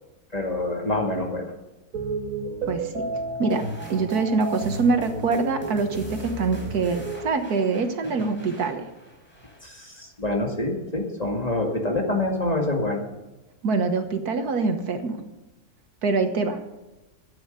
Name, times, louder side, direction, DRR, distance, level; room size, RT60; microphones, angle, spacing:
voice 1, 0.3-1.5 9.6-13.1, left 2 dB, 25° left, 0 dB, 2.1 m, -26 dB
sound 1, 1.9-7.3, right 2 dB, 60° right, 1.8 m, -32 dB
voice 2, 2.7-3.0 3.4-3.6 3.9-8.8 13.6-15.2 16.0-16.6, right 4 dB, 75° right, 7 dB, 1.8 m, -24 dB
sound 2, 3.5-10.0, right 1 dB, 5° left, 4.4 m, -45 dB
13.0 x 9.3 x 6.8 m, 1.0 s
omnidirectional pair, 1.6 m